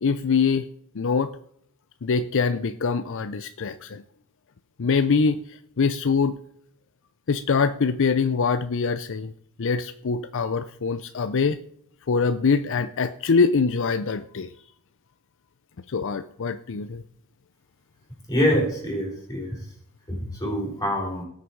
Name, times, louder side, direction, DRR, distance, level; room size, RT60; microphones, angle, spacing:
voice 1, 0.0-0.7 0.9-1.3 2.0-4.0 4.8-6.4 7.3-9.3 9.6-11.6 12.1-14.5 15.9-17.0, left 5 dB, 60° left, 11 dB, 0.5 m, -24 dB
voice 2, 18.3-19.6 20.1-21.2, equal, 15° left, 0 dB, 4.1 m, -25 dB
18.5 x 6.7 x 4.6 m, 0.68 s
head